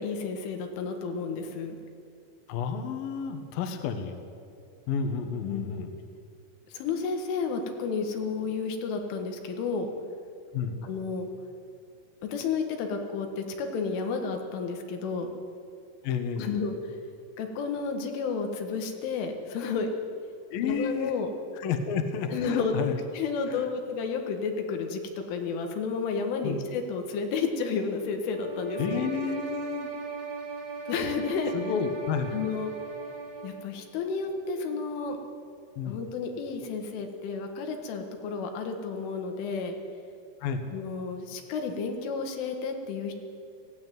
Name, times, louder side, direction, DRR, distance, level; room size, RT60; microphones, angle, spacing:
voice 1, 0.0-1.8 5.4-5.9 6.7-9.9 10.8-11.3 12.2-15.3 16.4-16.8 17.4-19.9 20.6-21.3 22.3-22.7 23.1-29.1 30.9-31.7 32.3-32.7 33.4-35.2 35.9-39.7 40.7-43.1, left 5 dB, 85° left, 4 dB, 4.3 m, -31 dB
voice 2, 2.5-4.1 4.9-5.9 10.5-10.8 16.0-16.6 20.5-21.1 21.6-23.0 23.5-23.7 26.4-26.6 28.8-29.9 31.5-32.3 35.8-36.0 40.4-40.6, left 6 dB, 60° left, 6 dB, 2.7 m, -31 dB
sound 1, 28.3-33.7, right 5 dB, 50° right, 5.0 m, -38 dB
18.5 x 16.0 x 9.3 m, 2.4 s
omnidirectional pair, 5.5 m